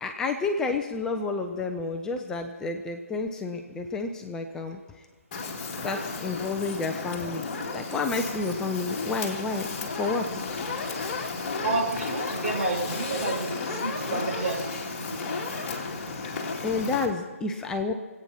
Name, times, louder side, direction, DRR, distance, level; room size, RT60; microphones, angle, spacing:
voice 1, 0.0-4.8 5.8-7.4 7.7-10.4 16.6-17.9, left 3 dB, 5° left, 4 dB, 0.5 m, -30 dB
Fire, 5.3-17.1, left 4 dB, 35° left, 2.3 m, -33 dB
voice 2, 11.6-15.7, right 3 dB, 60° right, -3 dB, 6.5 m, -31 dB
23.0 x 8.8 x 5.8 m, 1.4 s
figure-of-eight pair, 150°, 8 cm